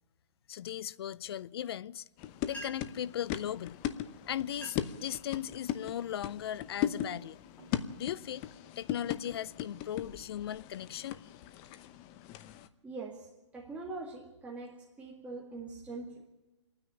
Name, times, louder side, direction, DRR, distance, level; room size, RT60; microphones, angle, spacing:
voice 1, 0.5-2.0 2.5-3.8 4.1-7.4 8.0-8.4 8.8-11.2, left 11 dB, 55° left, 0.6 m, -38 dB
sound 1, 2.2-12.7, left 11 dB, 30° left, 0.9 m, -39 dB
sound 2, 2.2-2.3 2.4-3.1 3.9-4.1 4.4-5.0 5.5-5.9 6.5-6.8 7.3-8.5, equal, 10° left, 4.0 m, -49 dB
voice 2, 12.8-16.3, right 3 dB, 10° right, 2.1 m, -43 dB
27.5 x 9.7 x 9.8 m
hypercardioid pair, 140°, 15 cm